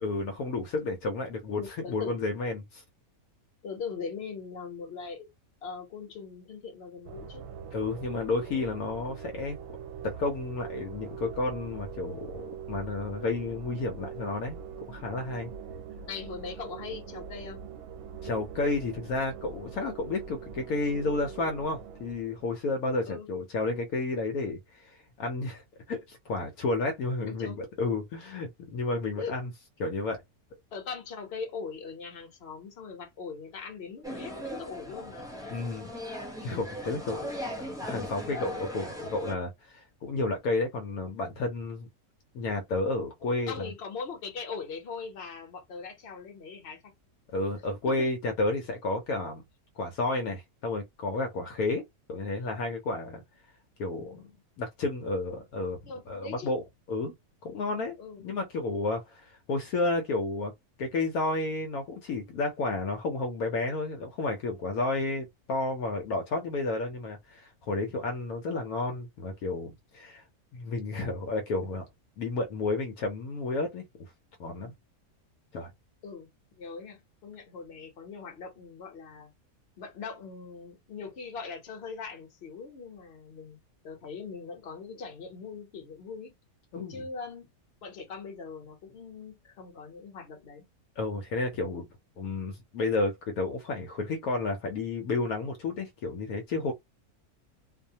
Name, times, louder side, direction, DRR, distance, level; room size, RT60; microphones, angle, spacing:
voice 1, 0.0-1.6 1.9-2.8 7.7-9.6 10.0-14.6 14.9-15.5 18.2-25.6 25.9-29.5 29.8-30.2 35.5-35.9 36.4-41.9 42.3-43.7 47.3-49.4 49.8-51.8 52.1-53.2 53.8-54.3 54.6-55.8 56.1-56.6 56.9-57.1 57.4-57.9 58.2-60.5 60.8-70.2 70.5-71.8 72.2-73.8 74.4-74.7 75.5-75.7 86.7-87.0 91.0-91.9 92.2-96.7, left 2 dB, 75° left, 1.1 m, -31 dB
voice 2, 1.5-2.3 3.6-5.3 5.6-7.5 16.1-17.6 23.0-23.3 27.3-27.6 29.1-29.3 30.7-35.3 43.5-46.8 55.8-56.5 58.0-58.2 76.0-76.3 76.6-79.3 79.8-83.6 83.8-86.3 86.9-87.5 87.8-90.6, left 5 dB, 50° left, 1.1 m, -40 dB
sound 1, 7.0-22.6, right 7 dB, 90° right, 1.1 m, -43 dB
sound 2, 34.0-39.3, equal, 5° right, 0.4 m, -38 dB
2.7 x 2.1 x 2.7 m
omnidirectional pair, 1.6 m